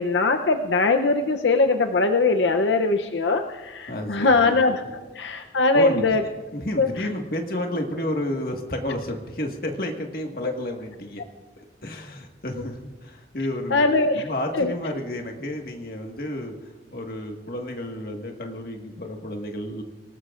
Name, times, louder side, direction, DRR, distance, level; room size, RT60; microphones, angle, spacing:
voice 1, 0.0-4.8 5.1-6.2 6.8-7.1 13.7-14.2 14.5-14.7, left 3 dB, 80° left, 6 dB, 0.7 m, -21 dB
voice 2, 3.9-4.5 4.8-4.9 5.7-6.0 6.5-11.2 11.6-13.8 14.2-19.8, left 1 dB, 55° left, 2 dB, 1.7 m, -31 dB
26.5 x 18.5 x 2.5 m, 1.2 s
head